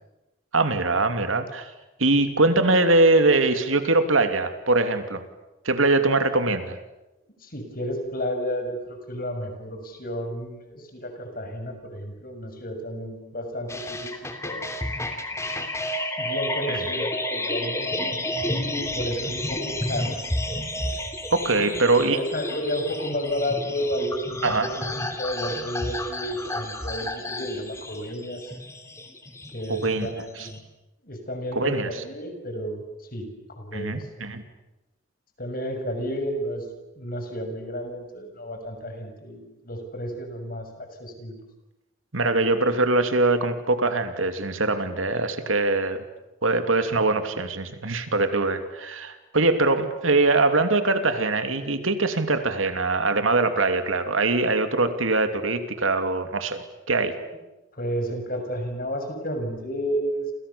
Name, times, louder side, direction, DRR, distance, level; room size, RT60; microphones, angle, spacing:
voice 1, 0.5-1.7 2.0-5.2 5.6-6.8 16.7-16.8 21.3-22.2 24.4-24.7 29.7-30.1 30.4-30.5 31.5-32.0 33.7-34.4 42.1-46.0 46.4-56.6 56.9-57.2, right 2 dB, 90° right, 8 dB, 2.9 m, -22 dB
voice 2, 7.4-14.1 14.4-14.7 15.3-15.6 16.2-18.1 18.4-20.2 21.5-21.8 22.1-28.5 29.5-30.6 31.0-32.8 33.1-34.1 35.4-36.6 37.0-41.4 57.7-60.3, equal, 45° left, 5 dB, 6.5 m, -32 dB
sound 1, 13.7-30.6, left 1 dB, 15° left, 3.0 m, -31 dB
29.5 x 28.5 x 7.1 m, 0.99 s
head